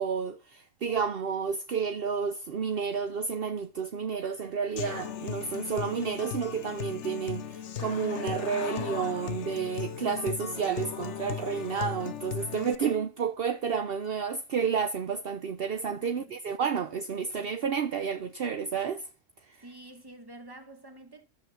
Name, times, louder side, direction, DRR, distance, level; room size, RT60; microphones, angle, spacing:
voice 1, 0.0-19.1 19.5-19.6, right 6 dB, 60° right, 1.0 m, -31 dB
Human voice / Acoustic guitar, 4.8-12.7, left 9 dB, 85° left, 1.1 m, -37 dB
voice 2, 15.9-16.3 19.6-21.2, right 2 dB, 20° right, 1.9 m, -48 dB
13.5 x 6.4 x 7.3 m
omnidirectional pair, 1.2 m